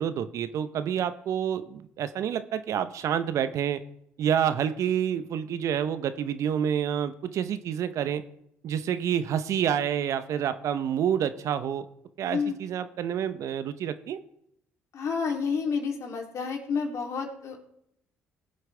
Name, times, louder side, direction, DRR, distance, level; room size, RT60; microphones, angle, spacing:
voice 1, 0.0-3.8 4.2-8.2 8.6-11.9 12.2-14.2, right 9 dB, 65° right, 12 dB, 0.9 m, -28 dB
voice 2, 12.2-12.6 14.9-17.6, left 5 dB, 60° left, 2 dB, 3.1 m, -30 dB
20.0 x 7.8 x 3.4 m, 0.75 s
hypercardioid pair, 60°, 6 cm